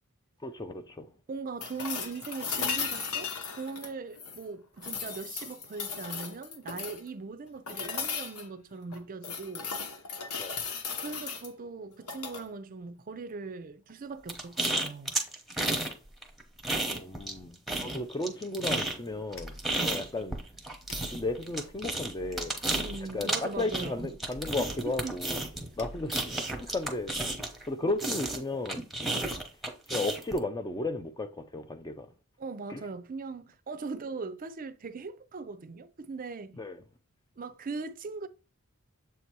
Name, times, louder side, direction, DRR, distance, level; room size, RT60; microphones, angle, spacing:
voice 1, 0.4-1.1 10.4-10.6 16.9-19.6 19.8-20.4 21.1-22.5 23.1-25.5 25.8-26.2 26.6-27.1 27.7-28.9 29.9-32.1 32.7-32.8 36.6-36.8, left 2 dB, 15° left, 0.4 m, -34 dB
voice 2, 1.3-9.7 11.0-15.1 19.7-20.1 22.7-24.1 24.6-24.7 25.0-25.2 26.7-26.8 27.5-27.6 32.4-36.6 37.4-38.3, right 4 dB, 40° right, 0.4 m, -40 dB
sound 1, 1.6-4.4 4.8-7.1 7.7-8.5 8.9-11.5 12.0-12.4 14.5-14.6, left 5 dB, 85° left, 1.1 m, -36 dB
sound 2, 14.3-15.9 16.2-17.4 17.7-27.7 28.0-30.4, right 1 dB, ahead, 0.9 m, -32 dB
sound 3, 19.1-27.7, left 1 dB, 60° left, 0.8 m, -49 dB
7.4 x 2.8 x 4.5 m
head